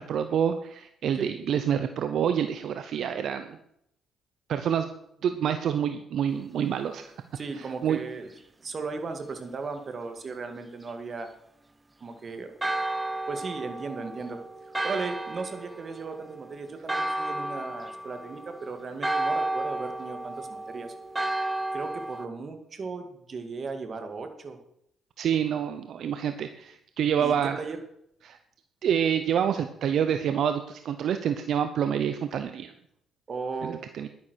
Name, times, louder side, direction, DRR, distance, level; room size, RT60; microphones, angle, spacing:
voice 1, 0.0-3.6 4.5-4.9 5.2-7.1 7.8-8.0 25.2-27.6 28.2-28.4 28.8-32.7 33.6-34.1, right 8 dB, 70° right, 9 dB, 0.8 m, -27 dB
voice 2, 7.3-8.3 8.6-11.3 12.0-12.5 13.3-14.4 14.7-20.9 21.7-24.6 27.2-27.8 33.3-33.8, right 4 dB, 45° right, 6 dB, 2.2 m, -36 dB
Church bell, 12.6-22.3, right 2 dB, 15° right, 0.9 m, -33 dB
11.0 x 9.5 x 6.3 m, 0.74 s
cardioid pair, 90°, 0 cm